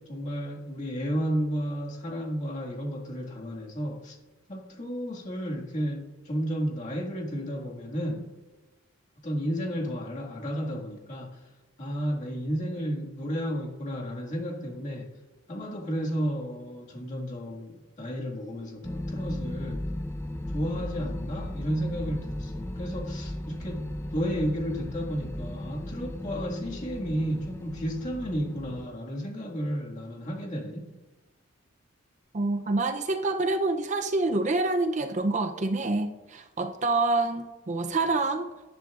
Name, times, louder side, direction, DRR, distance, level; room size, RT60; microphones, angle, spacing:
voice 1, 0.0-4.2 4.5-8.3 9.2-11.4 11.8-15.1 15.5-19.8 20.5-30.9, equal, 35° left, 1.9 m, -32 dB
sound 1, 18.8-28.9, left 1 dB, 15° left, 0.5 m, -36 dB
voice 2, 32.3-38.5, right 2 dB, 35° right, 0.5 m, -27 dB
18.0 x 10.5 x 2.4 m
head